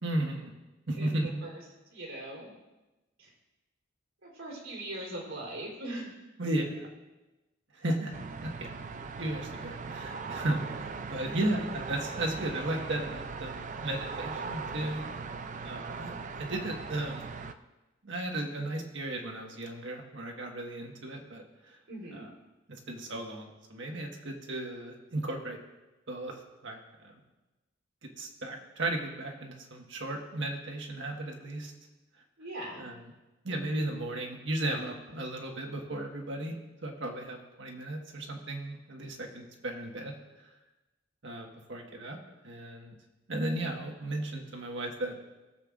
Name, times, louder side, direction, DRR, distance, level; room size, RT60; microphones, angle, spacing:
voice 1, 0.0-0.5 0.9-1.3 6.4-6.9 7.7-8.7 9.2-15.0 15.6-16.1 16.4-17.3 18.0-21.8 22.1-22.3 22.7-25.6 26.1-26.8 27.0-27.2 28.2-31.7 32.8-33.0 33.4-36.5 36.8-40.1 41.2-42.2 42.4-42.9 43.3-45.1, right 1 dB, 65° right, 2 dB, 1.5 m, -35 dB
voice 2, 1.0-1.5 1.9-2.5 3.2-3.3 4.2-6.1 11.2-11.4 21.9-22.2 32.4-32.9, right 1 dB, 85° right, -3 dB, 3.5 m, -40 dB
sound 1, 8.1-17.5, right 4 dB, 40° right, 0.4 m, -39 dB
19.0 x 7.7 x 2.5 m, 1.1 s
head